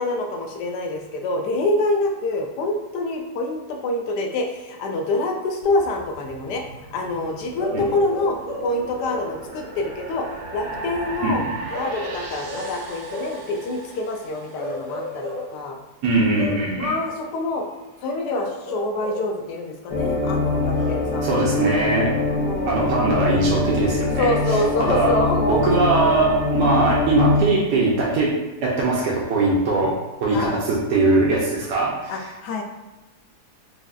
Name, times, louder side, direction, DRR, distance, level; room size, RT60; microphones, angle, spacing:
voice 1, 0.0-6.6 6.9-10.3 10.5-11.4 11.8-15.8 16.8-17.7 18.0-21.5 22.4-22.9 24.2-25.8 30.3-30.7 32.1-32.6, left 2 dB, 85° left, 2 dB, 1.2 m, -26 dB
sound 1, 5.6-15.0, right 3 dB, 70° right, 1.1 m, -37 dB
Bark / Livestock farm animals working animals, 7.6-9.4 11.7-13.5 14.6-15.6 16.3-16.7 18.3-19.4 20.7-21.1, left 1 dB, 25° left, 0.4 m, -33 dB
voice 2, 11.2-11.5 16.0-16.9 21.2-22.1 22.6-25.1 25.5-29.9 30.2-32.3, right 2 dB, 85° right, -4 dB, 1.2 m, -21 dB
sound 2, 19.9-27.4, left 3 dB, 55° left, 0.9 m, -23 dB
4.8 x 2.6 x 2.4 m, 1.1 s
omnidirectional pair, 1.7 m